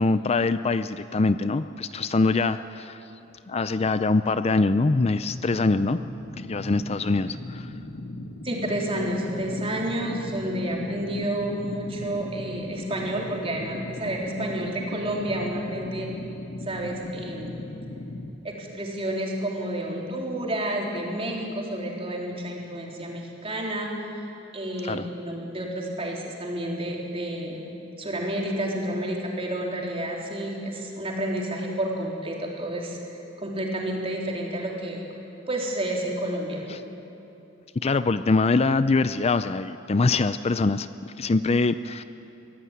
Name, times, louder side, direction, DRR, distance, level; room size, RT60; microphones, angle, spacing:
voice 1, 0.0-3.0 3.5-6.0 6.4-7.7 24.8-25.1 36.7-36.8 37.8-42.0, left 3 dB, 35° left, 13 dB, 0.5 m, -23 dB
sound 1, 5.3-18.3, left 1 dB, 70° left, 1.6 m, -38 dB
voice 2, 8.4-16.1 16.6-17.5 18.4-23.9 24.5-27.6 28.0-33.0 33.4-35.0 35.5-36.7, right 1 dB, 30° right, -1 dB, 3.9 m, -30 dB
24.0 x 16.0 x 9.8 m, 2.9 s
head